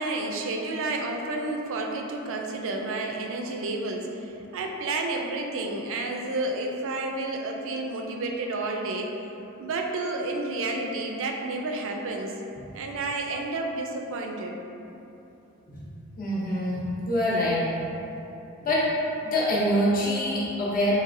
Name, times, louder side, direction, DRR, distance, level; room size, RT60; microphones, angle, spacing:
voice 1, 0.0-9.1 9.6-12.4 12.7-14.6, right 2 dB, 65° right, 2 dB, 0.4 m, -30 dB
voice 2, 16.2-17.6 18.6-18.9 19.2-21.0, left 1 dB, 40° left, -7 dB, 0.7 m, -25 dB
4.0 x 3.1 x 2.6 m, 2.9 s
head